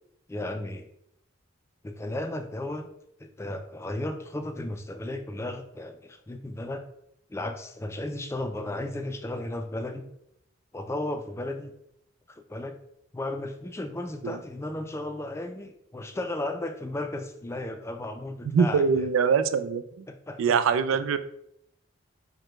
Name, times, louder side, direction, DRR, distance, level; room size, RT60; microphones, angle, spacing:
voice 1, 0.3-0.9 1.8-2.9 3.2-6.8 7.3-10.1 10.7-11.7 12.3-12.8 13.1-19.0 20.1-20.6, left 1 dB, 15° left, 7 dB, 0.3 m, -34 dB
voice 2, 18.5-20.1 20.4-21.2, right 6 dB, 90° right, 11 dB, 0.3 m, -23 dB
4.9 x 2.2 x 4.4 m, 0.75 s
head